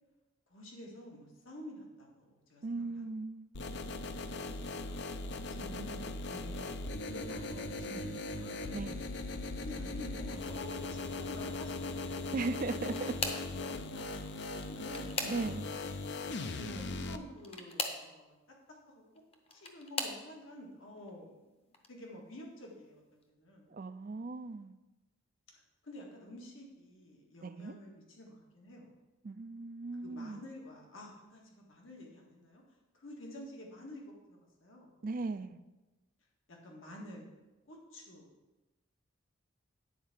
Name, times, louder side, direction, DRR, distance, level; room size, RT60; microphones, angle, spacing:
voice 1, 0.5-3.1 4.5-5.0 5.5-6.8 7.0-8.7 9.6-12.2 12.8-13.1 13.4-16.0 16.5-19.2 19.5-21.4 21.9-23.7 25.8-28.9 30.0-34.9 35.3-35.4 36.5-37.3 37.7-38.3, left 1 dB, 80° left, -1 dB, 1.8 m, -50 dB
voice 2, 2.6-3.5 8.7-9.0 12.3-13.1 15.3-15.7 23.7-24.7 27.4-27.8 29.2-30.4 35.0-35.6, right 3 dB, 40° right, 11 dB, 0.4 m, -37 dB
sound 1, 3.5-17.2, left 2 dB, 55° left, 0.6 m, -39 dB
sound 2, 12.6-13.6 14.5-15.8 17.4-18.1 19.2-20.2 21.0-21.3 21.7-21.9 23.2-23.3, left 3 dB, 30° left, 0.8 m, -39 dB
9.5 x 4.6 x 7.3 m, 1.1 s
head